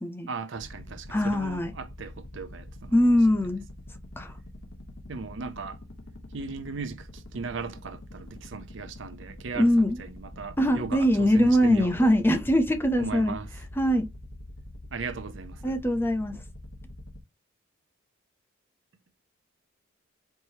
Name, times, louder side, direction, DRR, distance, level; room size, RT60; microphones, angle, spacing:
voice 1, 0.3-2.9 5.1-5.8 6.3-12.1 13.0-13.5 14.9-15.8, right 4 dB, 60° right, 0.6 m, -37 dB
sound 1, 0.5-17.2, left 1 dB, 80° left, 0.9 m, -45 dB
voice 2, 1.1-1.7 2.9-3.6 4.2-4.3 9.5-10.0 10.6-13.4 13.8-14.1 15.6-16.4, equal, 10° left, 0.5 m, -22 dB
4.5 x 3.1 x 2.7 m
head